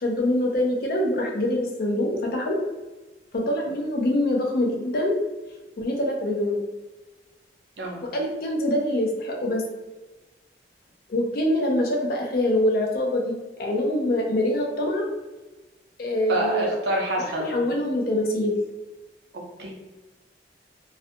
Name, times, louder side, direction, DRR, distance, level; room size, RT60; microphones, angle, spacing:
voice 1, 0.0-2.6 3.3-5.1 5.8-6.6 8.0-9.6 11.1-13.3 13.6-15.0 16.0-16.7 17.2-18.6, left 1 dB, 55° left, 0 dB, 0.4 m, -24 dB
voice 2, 16.3-17.7 19.6-19.7, right 1 dB, 65° right, -1 dB, 0.6 m, -27 dB
2.4 x 2.2 x 2.6 m, 1.2 s
head